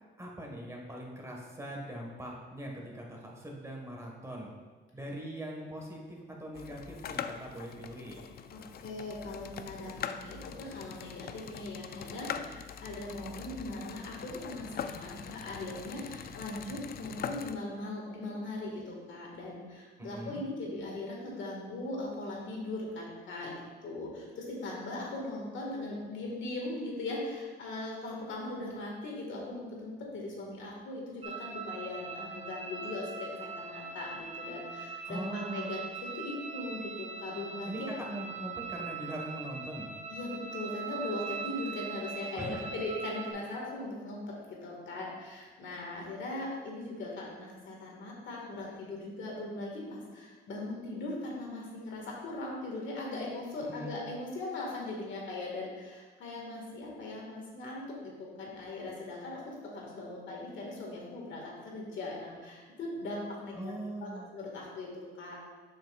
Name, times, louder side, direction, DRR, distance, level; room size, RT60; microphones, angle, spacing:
voice 1, 0.2-4.6 4.9-8.2 20.0-20.4 35.0-35.8 37.7-39.9 42.3-42.7 53.6-54.0 63.5-64.3, right 1 dB, 15° right, -1 dB, 1.5 m, -41 dB
sound 1, 6.5-17.5, left 8 dB, 50° left, 0.4 m, -42 dB
voice 2, 8.5-23.5 23.8-35.8 36.1-37.7 40.1-63.7 64.0-65.4, left 2 dB, 70° left, -2 dB, 1.8 m, -39 dB
sound 2, 31.2-43.3, right 5 dB, 35° right, 1.0 m, -41 dB
7.2 x 5.7 x 2.4 m, 1.4 s
cardioid pair, 90°, 20 cm